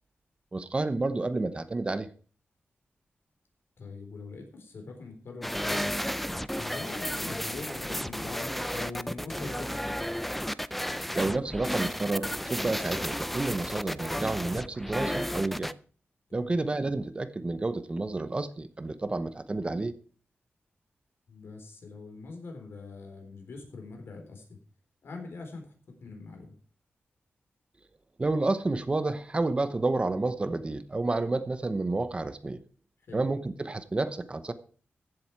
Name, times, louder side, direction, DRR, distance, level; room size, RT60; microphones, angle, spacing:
voice 1, 0.5-2.1 11.1-15.7 16.3-19.9 28.2-32.6 33.1-34.5, right 2 dB, 25° right, 0.9 m, -30 dB
voice 2, 3.8-6.1 6.5-10.0 16.3-16.5 21.3-24.4 25.0-25.7 26.0-26.6 33.1-33.2, left 3 dB, 70° left, 3.8 m, -43 dB
sound 1, 5.4-15.7, equal, 5° left, 0.4 m, -33 dB
15.0 x 7.7 x 4.7 m
wide cardioid pair, 130°, 4 cm